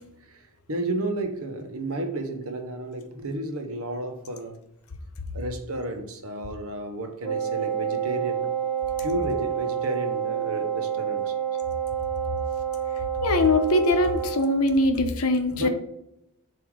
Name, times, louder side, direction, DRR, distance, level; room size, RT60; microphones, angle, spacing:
voice 1, 0.7-4.6 5.3-8.5 9.0-11.3 15.6-15.7, right 1 dB, 70° right, 5 dB, 0.9 m, -32 dB
Wind instrument woodwind instrument, 7.2-14.5, right 9 dB, 10° left, 1.0 m, -28 dB
voice 2, 13.2-15.7, left 2 dB, 70° left, 7 dB, 0.8 m, -22 dB
7.2 x 2.8 x 4.8 m, 0.82 s
head